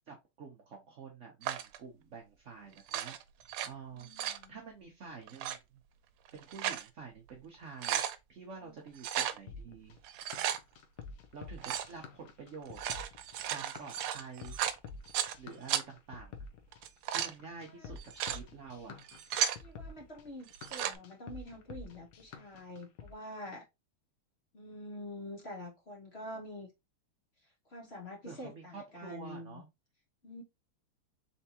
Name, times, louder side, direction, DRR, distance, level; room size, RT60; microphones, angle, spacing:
voice 1, 0.1-3.1 3.6-5.8 6.3-10.0 11.3-12.8 13.4-14.8 15.4-16.4 17.1-19.0 28.3-29.7, right 5 dB, 60° right, 0.7 m, -48 dB
sound 1, 1.4-1.8 2.8-3.7 4.0-4.4 5.3-5.6 6.3-6.9 7.3-7.4 7.6-8.2 9.0-9.4 10.0-10.6 11.6-11.9 12.6-15.3 15.7-15.8 16.7-17.3 18.0-18.4 19.0-19.6 20.5-21.0, right 10 dB, 85° right, 1.5 m, -34 dB
voice 2, 3.9-4.6 8.6-8.7 17.6-17.9 19.5-23.6 24.5-26.7 27.7-29.6 30.2-30.4, left 1 dB, 40° left, 1.1 m, -46 dB
sound 2, 9.5-23.1, left 5 dB, 65° left, 1.1 m, -48 dB
4.4 x 3.5 x 2.8 m
omnidirectional pair, 2.4 m